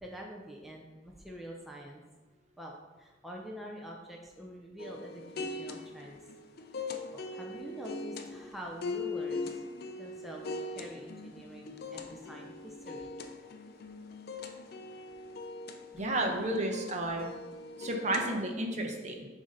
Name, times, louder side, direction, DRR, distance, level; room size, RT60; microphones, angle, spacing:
voice 1, 0.0-2.0 2.6-6.2 7.1-9.6 10.0-13.1, equal, ahead, -2 dB, 0.5 m, -46 dB
sound 1, 4.8-18.3, left 3 dB, 55° left, 0.5 m, -41 dB
voice 2, 15.9-17.3 17.8-19.3, right 1 dB, 40° right, 2 dB, 0.8 m, -32 dB
7.0 x 2.7 x 5.0 m, 1.2 s
head